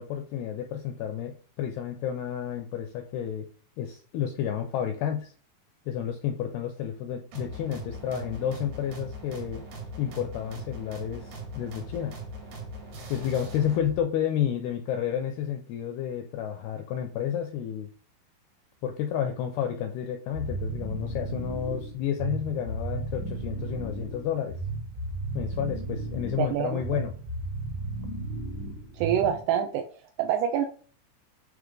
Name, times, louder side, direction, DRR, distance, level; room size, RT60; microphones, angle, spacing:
voice 1, 0.0-3.5 3.8-5.3 5.9-9.6 10.0-12.2 13.1-17.9 18.8-24.6 25.3-27.1, left 9 dB, 85° left, 5 dB, 2.3 m, -31 dB
sound 1, 7.3-14.0, right 1 dB, 65° right, 3.9 m, -40 dB
sound 2, 20.3-29.6, right 2 dB, 45° right, 1.5 m, -34 dB
voice 2, 26.4-26.8 28.9-29.9 30.2-30.6, right 9 dB, 85° right, 4 dB, 2.3 m, -26 dB
9.2 x 3.2 x 3.8 m, 0.41 s
omnidirectional pair, 5.3 m